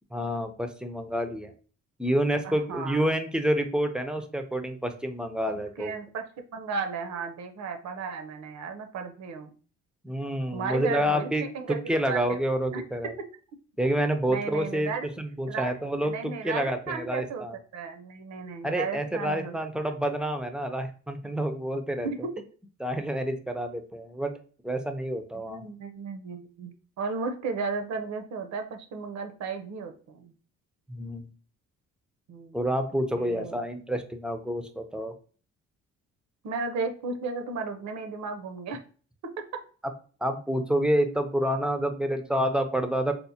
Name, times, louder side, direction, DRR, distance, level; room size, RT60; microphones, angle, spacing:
voice 1, 0.1-1.5 2.0-5.9 10.0-13.1 13.8-14.9 15.2-17.6 18.6-22.1 22.8-24.3 24.6-25.6 30.9-31.3 32.5-35.1 40.2-43.1, equal, 5° right, 7 dB, 0.4 m, -28 dB
voice 2, 2.4-3.1 5.5-6.3 6.5-9.5 10.5-11.8 12.1-12.4 12.7-12.8 14.3-15.1 15.5-15.7 16.0-17.4 17.7-19.5 22.0-22.2 25.5-26.7 27.0-30.3 32.3-32.6 33.2-33.6 36.4-38.8, right 4 dB, 65° right, 6 dB, 0.7 m, -34 dB
4.4 x 2.0 x 2.7 m, 0.41 s
cardioid pair, 90°, 30 cm